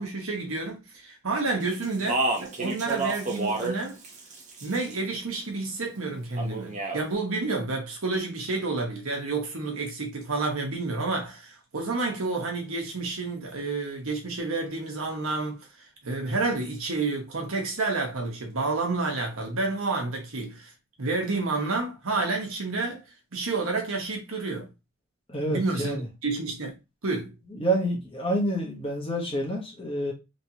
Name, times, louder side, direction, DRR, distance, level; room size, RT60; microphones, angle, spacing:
voice 1, 0.0-4.0 4.6-15.7 16.0-20.7 21.0-23.0 23.3-24.7 25.5-26.0 26.2-26.8 27.0-27.4, right 3 dB, 75° right, 1.1 m, -29 dB
Speech, 1.8-3.8 4.0-4.9 6.4-7.0, right 2 dB, 35° right, 0.7 m, -29 dB
voice 2, 25.3-26.1 27.5-30.1, right 1 dB, 25° left, 1.0 m, -28 dB
3.2 x 2.9 x 2.8 m
head